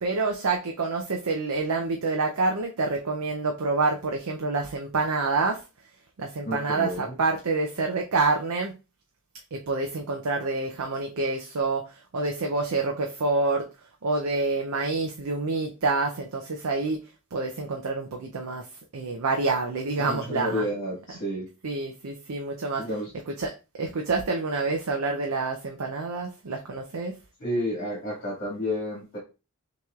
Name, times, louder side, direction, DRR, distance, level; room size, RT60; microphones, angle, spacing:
voice 1, 0.0-5.6 6.2-8.7 9.5-13.7 14.0-17.0 17.3-18.7 18.9-20.7 21.6-22.8 23.3-23.5 23.8-27.2, right 3 dB, 80° right, 2 dB, 0.6 m, -27 dB
voice 2, 6.4-7.2 20.1-21.5 22.8-23.1 27.4-29.2, equal, 50° left, -7 dB, 2.0 m, -30 dB
5.8 x 3.0 x 2.4 m, 0.30 s
head